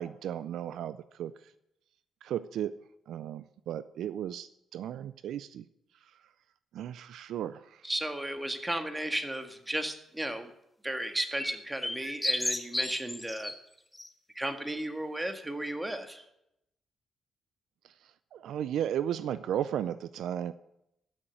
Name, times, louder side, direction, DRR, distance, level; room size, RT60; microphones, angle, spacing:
voice 1, 0.0-1.3 2.2-2.7 3.1-5.6 6.7-7.6 18.3-20.5, right 10 dB, 75° right, 15 dB, 0.4 m, -34 dB
voice 2, 7.8-10.5 10.8-13.5 14.4-16.2, right 1 dB, 15° right, 7 dB, 1.8 m, -34 dB
sound 1, 10.9-13.5 13.9-14.1, left 1 dB, 10° left, 1.4 m, -33 dB
13.5 x 6.3 x 7.9 m, 0.83 s
supercardioid pair, 55°, 0 cm